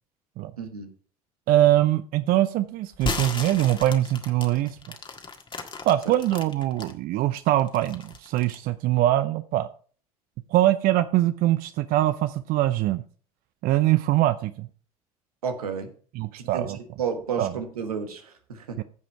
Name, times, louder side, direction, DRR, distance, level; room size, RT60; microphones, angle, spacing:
voice 1, 0.6-0.9 15.4-15.9 16.4-18.8, right 6 dB, 80° right, 6 dB, 1.5 m, -32 dB
voice 2, 1.5-4.8 5.8-9.7 10.5-13.0 13.6-14.7 16.1-16.8 17.4-17.5 18.8-18.9, right 14 dB, 50° right, 13 dB, 0.6 m, -23 dB
sound 1, 2.9-6.9 7.4-8.7, left 4 dB, 25° left, 1.7 m, -34 dB
15.0 x 5.1 x 4.6 m, 0.43 s
figure-of-eight pair, 60°, 19 cm